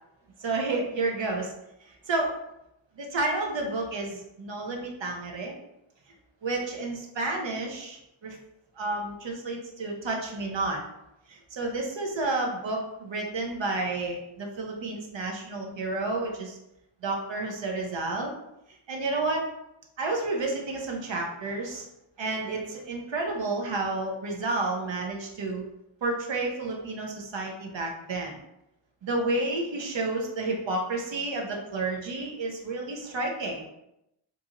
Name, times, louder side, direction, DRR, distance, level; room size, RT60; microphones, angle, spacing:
voice 1, 0.4-1.5 1.8-2.3 3.0-5.6 6.4-8.4 8.8-10.8 11.3-16.6 17.0-18.3 18.9-19.4 20.0-21.8 22.2-25.6 26.0-28.4 29.0-33.7, right 2 dB, 65° right, 0 dB, 0.8 m, -30 dB
2.7 x 2.4 x 2.8 m, 0.85 s
wide cardioid pair, 60°, 49 cm